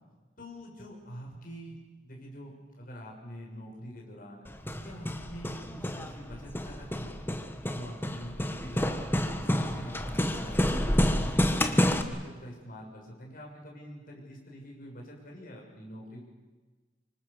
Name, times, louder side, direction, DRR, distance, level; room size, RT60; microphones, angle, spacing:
voice 1, 0.4-4.4 4.8-7.2 7.7-8.9 9.4-11.4 11.7-16.2, equal, 55° left, -1 dB, 6.6 m, -45 dB
Hammer, 4.5-12.0, equal, 15° left, 1.4 m, -29 dB
26.0 x 24.5 x 6.8 m, 1.3 s
head